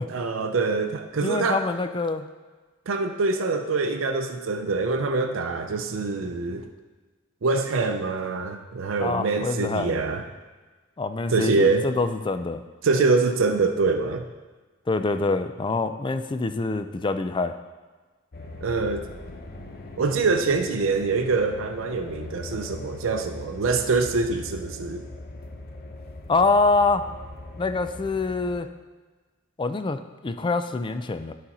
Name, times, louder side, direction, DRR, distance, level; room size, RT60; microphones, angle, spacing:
voice 1, 0.1-1.6 2.9-6.7 7.4-10.2 11.3-11.8 12.8-14.2 18.6-19.1 20.0-25.0, right 4 dB, 75° right, 6 dB, 0.5 m, -24 dB
voice 2, 1.2-2.3 9.0-10.0 11.0-12.6 14.9-17.5 26.3-27.0 27.6-28.7 29.6-31.3, left 3 dB, 25° left, 9 dB, 0.4 m, -25 dB
sound 1, 18.3-28.6, left 2 dB, 50° left, 0.8 m, -40 dB
11.5 x 4.2 x 4.2 m, 1.3 s
head